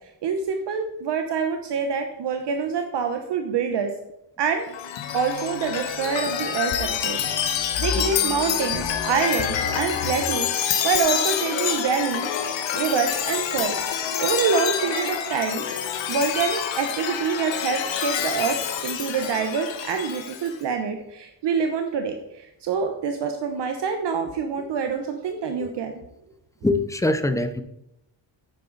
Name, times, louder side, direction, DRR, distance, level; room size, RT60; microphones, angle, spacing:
voice 1, 0.2-3.9 4.4-4.7 5.1-12.3 12.7-13.8 14.2-15.6 16.1-18.6 18.8-25.9, right 6 dB, 65° right, 5 dB, 1.0 m, -26 dB
Chime, 4.7-20.5, left 8 dB, 75° left, 1.2 m, -27 dB
voice 2, 26.6-27.6, left 2 dB, 5° left, 10 dB, 0.5 m, -23 dB
9.7 x 8.5 x 4.0 m, 0.83 s
wide cardioid pair, 150°, 46 cm